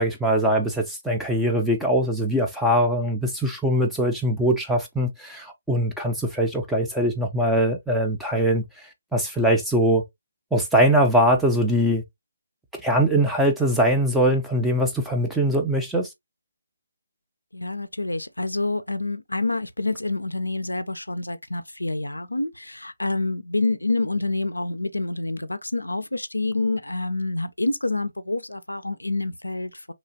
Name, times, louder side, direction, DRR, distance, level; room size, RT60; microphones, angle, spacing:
voice 1, 0.0-8.6 9.1-10.0 10.5-12.0 12.8-16.1, right 1 dB, ahead, 0.5 m, -22 dB
voice 2, 17.5-29.9, left 2 dB, 90° left, 0.4 m, -27 dB
2.9 x 2.3 x 2.6 m
figure-of-eight pair, 145°, 0 cm